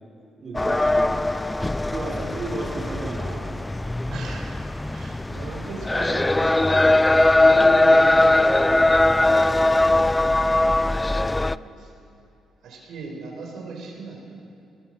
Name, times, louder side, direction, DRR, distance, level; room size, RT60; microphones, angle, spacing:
voice 1, 0.4-1.2 1.9-3.6, right 2 dB, 45° right, -2 dB, 4.7 m, -33 dB
sound 1, 0.5-11.6, left 2 dB, 15° left, 0.4 m, -20 dB
voice 2, 1.9-2.3 4.1-4.6 4.9-6.8 7.2-10.1 10.9-11.9 12.6-14.2, right 4 dB, 75° right, 0 dB, 4.8 m, -38 dB
20.0 x 18.5 x 7.7 m, 2.6 s
cardioid pair, 90°, 0 cm